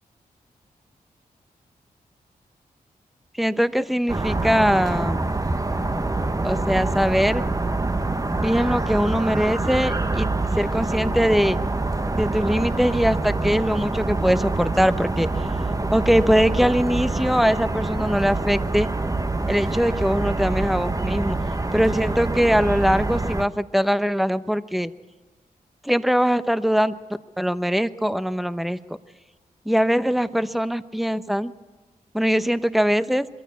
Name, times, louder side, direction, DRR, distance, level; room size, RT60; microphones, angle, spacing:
voice 1, 3.4-5.2 6.4-7.4 8.3-10.3 10.5-11.6 12.1-15.3 15.9-18.9 19.5-21.3 21.7-24.9 25.8-27.0 27.4-28.8 29.7-31.5 32.1-33.3, equal, ahead, 12 dB, 0.9 m, -21 dB
sound 1, 4.1-23.4, right 2 dB, 20° right, 1.1 m, -25 dB
22.5 x 14.0 x 8.3 m, 1.3 s
cardioid pair, 50°, 16 cm